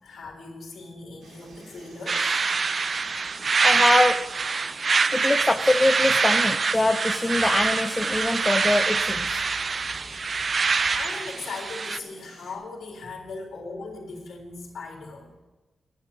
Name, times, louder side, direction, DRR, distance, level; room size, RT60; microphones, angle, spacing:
voice 1, 0.0-2.5 10.9-15.4, left 3 dB, 75° left, -1 dB, 3.9 m, -38 dB
Insect, 1.2-12.5, right 2 dB, 85° right, 3.8 m, -49 dB
sound 1, 2.1-12.0, right 4 dB, 35° right, 0.5 m, -25 dB
voice 2, 3.6-4.2 5.1-9.4, left 2 dB, 10° left, 6 dB, 0.6 m, -23 dB
13.0 x 10.5 x 7.4 m, 1.1 s
wide cardioid pair, 175°, 0 cm